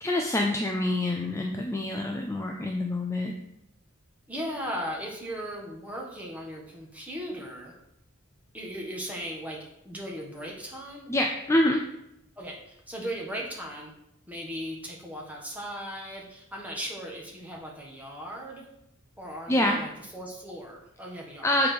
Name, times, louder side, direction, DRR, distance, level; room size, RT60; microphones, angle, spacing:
voice 1, 0.0-3.3 11.1-11.8 19.5-19.8 21.4-21.7, left 1 dB, 15° left, 1 dB, 0.5 m, -26 dB
voice 2, 4.3-7.7 8.5-11.0 12.4-13.9 14.3-18.6 19.2-21.6, equal, 5° right, -2 dB, 1.4 m, -37 dB
7.0 x 4.6 x 5.1 m, 0.82 s
head